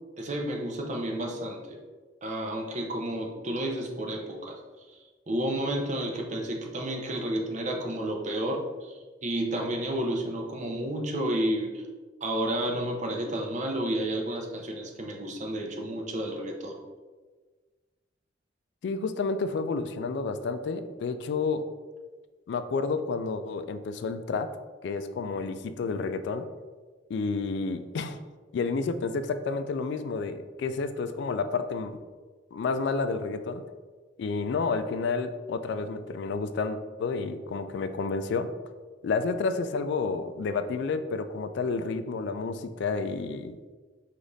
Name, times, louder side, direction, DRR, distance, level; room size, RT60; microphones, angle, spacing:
voice 1, 0.2-1.8 2.2-5.0 5.3-11.8 12.2-16.8, right 1 dB, 40° right, 2 dB, 0.6 m, -31 dB
voice 2, 18.8-21.7 22.5-24.6 24.8-26.5 27.1-28.2 28.5-32.0 32.5-33.6 34.2-38.5 39.0-43.5, left 4 dB, 65° left, 10 dB, 0.3 m, -30 dB
5.0 x 2.5 x 3.9 m, 1.4 s
head